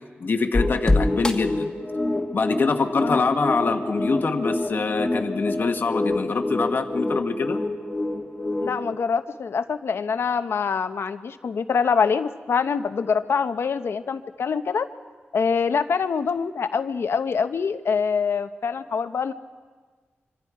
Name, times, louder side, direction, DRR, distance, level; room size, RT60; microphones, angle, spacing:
voice 1, 0.2-1.7 2.3-7.6, left 4 dB, 55° left, 5 dB, 1.1 m, -24 dB
sound 1, 0.5-8.9, left 2 dB, 15° left, 1.5 m, -26 dB
voice 2, 8.6-14.9 15.3-19.3, left 6 dB, 75° left, 10 dB, 0.9 m, -25 dB
25.5 x 25.0 x 4.8 m, 1.5 s
wide cardioid pair, 165°, 4 cm